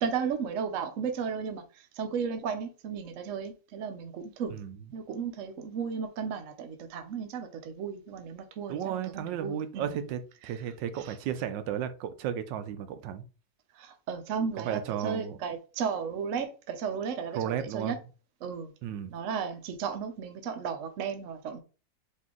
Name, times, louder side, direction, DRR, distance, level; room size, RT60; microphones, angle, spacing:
voice 1, 0.0-4.6 4.9-10.0 10.4-10.6 11.0-11.2 13.7-18.0 18.4-18.7 19.1-21.6, right 6 dB, 60° right, 0.8 m, -34 dB
voice 2, 8.7-13.2 14.7-15.4 17.3-18.0 18.8-19.1, right 9 dB, 80° right, 1.3 m, -34 dB
4.2 x 2.7 x 3.7 m
omnidirectional pair, 1.9 m